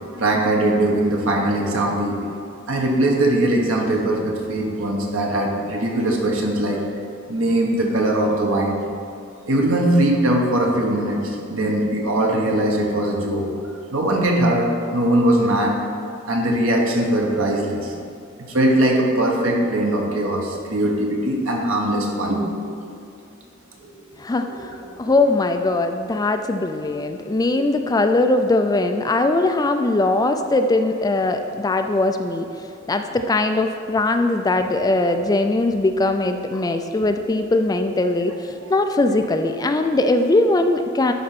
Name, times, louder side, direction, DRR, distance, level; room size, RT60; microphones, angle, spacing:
voice 1, 0.2-2.2 2.7-6.8 7.3-8.8 9.5-13.5 13.9-15.8 16.3-17.9 18.4-22.5 22.9-23.0 23.8-23.9 24.5-24.6 27.4-27.5, right 1 dB, 75° right, 0 dB, 1.4 m, -20 dB
voice 2, 24.2-32.5 32.9-41.1, left 2 dB, 20° left, 6 dB, 0.4 m, -20 dB
11.0 x 4.2 x 5.9 m, 2.5 s
head